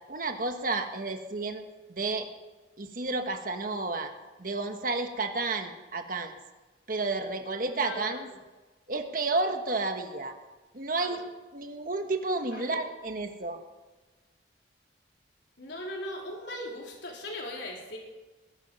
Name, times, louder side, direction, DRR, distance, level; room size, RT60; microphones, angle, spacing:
voice 1, 0.1-1.6 1.9-2.3 2.8-4.1 4.4-6.3 6.9-8.3 8.9-10.4 10.7-11.2 11.5-13.6, right 3 dB, 50° right, 5 dB, 1.4 m, -31 dB
voice 2, 7.7-8.3 11.0-11.2 12.5-12.8 15.6-18.0, left 1 dB, 70° left, -1 dB, 4.1 m, -39 dB
21.0 x 12.0 x 5.5 m, 1.2 s
head